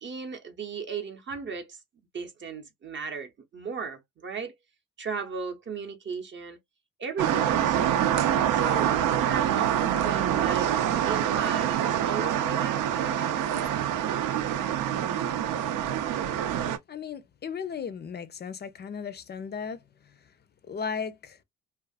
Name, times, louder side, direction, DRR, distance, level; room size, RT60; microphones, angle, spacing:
voice 1, 0.0-1.8 2.1-4.5 5.0-6.6 7.0-8.1 8.5-10.7 11.0-13.4, right 5 dB, 40° right, 0.6 m, -36 dB
sound 1, 7.2-16.8, right 10 dB, 85° right, 0.5 m, -26 dB
voice 2, 16.9-19.8 20.7-21.4, left 6 dB, 35° left, 0.5 m, -35 dB
2.4 x 2.4 x 2.3 m
cardioid pair, 90°, 30 cm